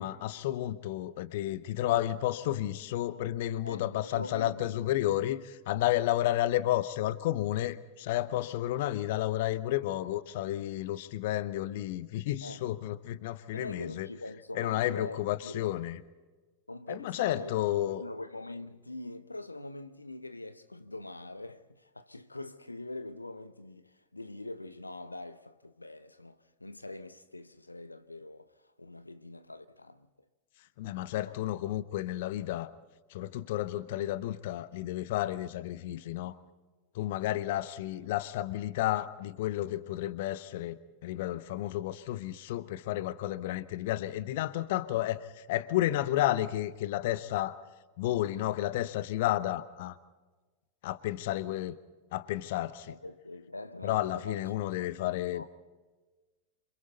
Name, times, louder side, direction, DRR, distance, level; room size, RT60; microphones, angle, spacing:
voice 1, 0.0-14.1 14.5-16.0 16.9-18.0 30.8-32.7 33.1-36.4 36.9-47.6 48.0-50.0 50.8-51.8 52.1-52.9 53.8-55.5, left 14 dB, 50° left, 0.8 m, -31 dB
voice 2, 3.6-4.7 12.4-12.6 13.5-15.8 16.7-17.6 17.9-30.1 31.2-31.3 37.3-37.4 52.9-54.5 55.3-55.5, left 2 dB, 85° left, 0.8 m, -43 dB
28.0 x 26.5 x 4.0 m
figure-of-eight pair, 90°, 0 cm